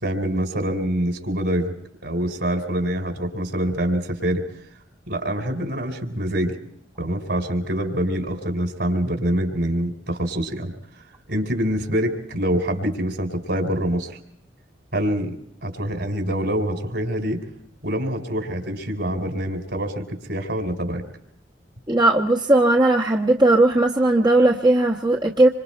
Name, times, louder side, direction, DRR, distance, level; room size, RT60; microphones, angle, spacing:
voice 1, 0.0-1.7 2.0-4.4 5.1-6.5 7.0-10.7 11.3-14.1 14.9-15.4 15.6-17.4 17.8-21.0, right 1 dB, 65° right, 6 dB, 3.9 m, -25 dB
voice 2, 21.9-25.5, right 2 dB, 25° right, -1 dB, 1.1 m, -17 dB
27.0 x 25.0 x 4.4 m, 0.69 s
head